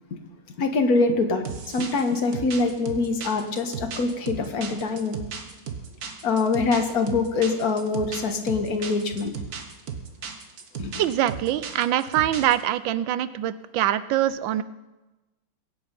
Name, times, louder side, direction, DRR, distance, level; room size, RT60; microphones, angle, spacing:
voice 1, 0.6-5.2 6.2-9.3 10.8-10.9, left 3 dB, 50° left, 6 dB, 1.8 m, -24 dB
sound 1, 1.5-12.6, right 6 dB, 55° right, 1.6 m, -36 dB
voice 2, 11.0-14.6, right 12 dB, 80° right, 14 dB, 1.3 m, -24 dB
22.0 x 8.6 x 5.3 m, 1.1 s
omnidirectional pair, 2.1 m